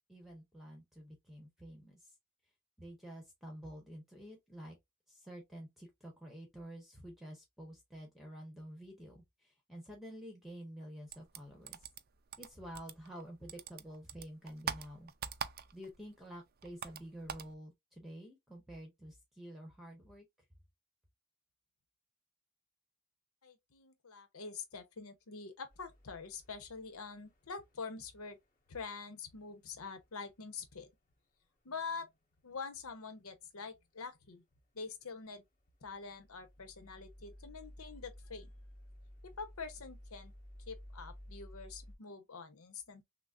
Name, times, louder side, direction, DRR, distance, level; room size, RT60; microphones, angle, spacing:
voice 1, 0.1-2.1 2.8-4.8 5.1-11.9 12.4-15.1 15.7-20.3, equal, ahead, 0.9 m, -49 dB
sound 1, 11.1-13.2 13.5-16.0 16.3-17.5, right 7 dB, 45° right, 0.4 m, -43 dB
voice 2, 23.4-28.4 28.7-30.9 31.6-32.1 32.4-34.4 34.7-35.4 35.8-38.5 39.2-40.3 40.7-43.0, left 5 dB, 85° left, 0.8 m, -45 dB
sound 2, 25.7-27.3 35.8-41.9, equal, 40° left, 1.5 m, -54 dB
6.0 x 2.0 x 2.4 m
head